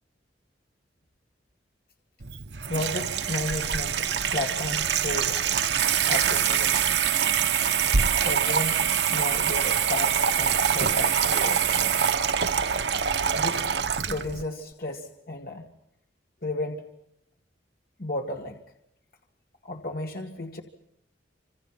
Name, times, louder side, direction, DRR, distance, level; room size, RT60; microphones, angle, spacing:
Water tap faucet / Sink (filling or washing), 2.2-14.4, right 7 dB, 80° right, 1.0 m, -24 dB
voice 1, 2.7-5.5 6.1-7.0 8.1-11.8 13.3-15.7 16.4-16.9 18.0-18.6 19.6-20.6, left 2 dB, 55° left, 2 dB, 2.0 m, -33 dB
29.0 x 27.0 x 5.9 m, 0.77 s
head